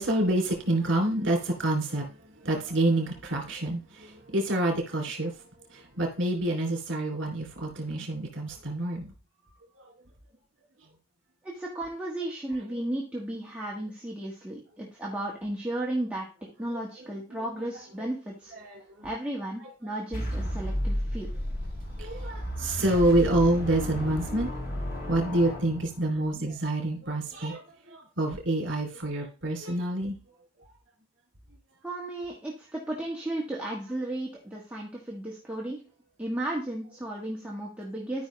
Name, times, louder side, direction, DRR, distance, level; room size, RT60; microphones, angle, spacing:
voice 1, 0.0-9.1 9.7-9.9 16.7-16.8 17.3-17.7 18.5-19.1 19.6-19.7 22.0-24.6 25.1-30.2 30.6-30.7, right 1 dB, 75° right, 2.8 m, -28 dB
voice 2, 11.4-16.3 16.6-18.5 19.0-21.3 31.8-35.8 36.2-38.3, right 1 dB, 5° right, 1.5 m, -34 dB
sound 1, 20.1-26.3, equal, 50° left, 2.2 m, -33 dB
12.5 x 5.4 x 3.2 m
head